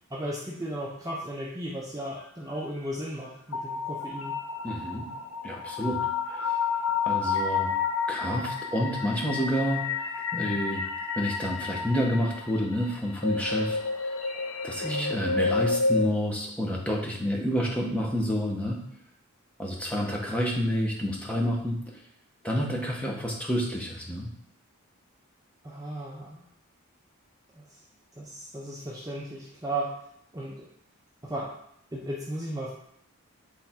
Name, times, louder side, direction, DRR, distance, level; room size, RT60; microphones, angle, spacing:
voice 1, 0.1-4.3 14.8-15.1 25.6-26.4 27.5-27.8 28.2-29.9 30.3-30.7 31.2-31.5 31.9-32.7, right 1 dB, 15° right, -2 dB, 0.5 m, -35 dB
sound 1, 3.5-16.0, left 4 dB, 80° left, 0.7 m, -30 dB
voice 2, 4.6-5.1 5.4-6.6 7.0-7.7 8.1-9.9 10.3-10.8 11.2-14.1 14.6-18.8 19.6-21.8 22.4-24.3, equal, 5° left, -1 dB, 0.9 m, -29 dB
8.1 x 3.4 x 4.3 m, 0.73 s
head